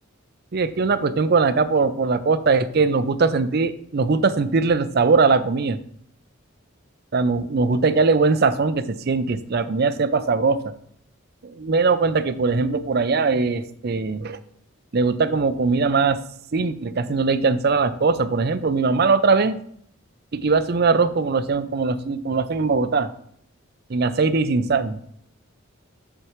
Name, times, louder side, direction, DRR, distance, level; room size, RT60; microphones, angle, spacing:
voice 1, 0.5-5.8 7.1-10.7 11.4-14.4 14.9-16.2 16.5-19.6 20.3-23.1 23.9-25.0, right 4 dB, 50° right, 13 dB, 0.5 m, -21 dB
7.8 x 6.9 x 3.1 m, 0.66 s
head